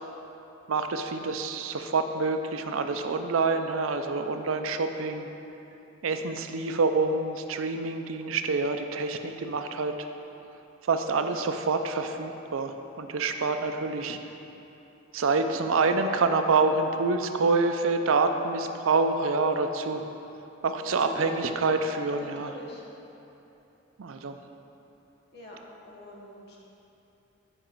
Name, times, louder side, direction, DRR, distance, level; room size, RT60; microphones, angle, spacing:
voice 1, 0.7-5.3 6.0-10.1 10.8-14.2 15.1-20.0 20.6-22.5 24.0-24.4, right 3 dB, 85° right, 7 dB, 0.5 m, -27 dB
voice 2, 20.8-21.4 22.1-22.8 25.3-26.6, equal, 55° left, -3 dB, 1.4 m, -44 dB
9.9 x 5.1 x 4.5 m, 3.0 s
head